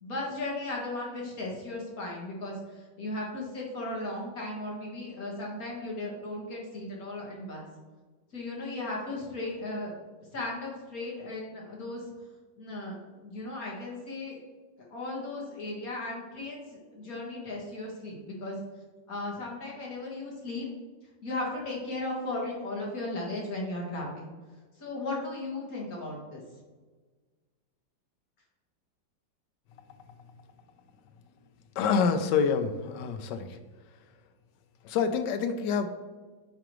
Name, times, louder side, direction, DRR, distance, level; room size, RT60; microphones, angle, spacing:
voice 1, 0.0-7.7 8.3-9.9 10.3-12.0 12.6-14.4 14.9-18.6 19.1-20.7 21.2-24.3 24.8-26.4, left 2 dB, 50° left, -3 dB, 2.0 m, -36 dB
voice 2, 31.8-33.5 34.8-35.9, left 6 dB, 70° left, 8 dB, 1.2 m, -27 dB
8.9 x 4.7 x 3.1 m, 1.3 s
omnidirectional pair, 2.1 m